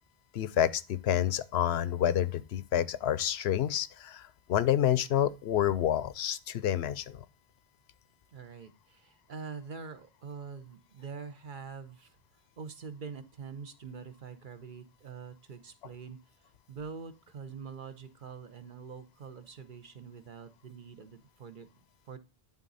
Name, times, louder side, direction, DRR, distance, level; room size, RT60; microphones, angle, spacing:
voice 1, 0.3-7.2, left 10 dB, 85° left, 0.9 m, -28 dB
voice 2, 8.3-12.2 12.6-22.2, right 5 dB, 55° right, 1.0 m, -45 dB
11.0 x 4.0 x 4.0 m
omnidirectional pair, 1.0 m